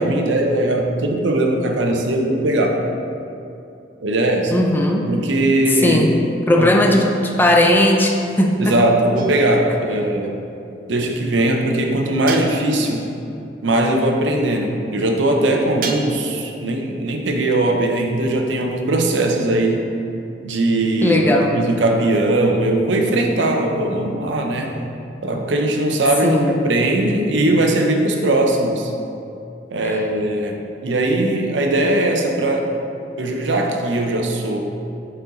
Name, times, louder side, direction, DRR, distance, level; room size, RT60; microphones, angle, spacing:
voice 1, 0.0-2.8 4.0-4.6 5.1-6.1 6.6-7.0 8.6-10.3 10.9-13.1 13.6-19.9 20.4-21.2 21.5-24.8 25.2-28.9 29.7-30.6 30.8-32.7 33.2-34.6, right 1 dB, 85° right, 2 dB, 0.7 m, -19 dB
voice 2, 4.5-5.1 5.8-8.7 21.0-21.6 26.2-26.6 29.8-30.0, left 1 dB, 10° left, 1 dB, 0.5 m, -17 dB
sound 1, 9.1-9.8 12.3-13.1 15.8-16.5, right 5 dB, 50° right, 0.4 m, -32 dB
6.1 x 4.4 x 3.9 m, 2.7 s
head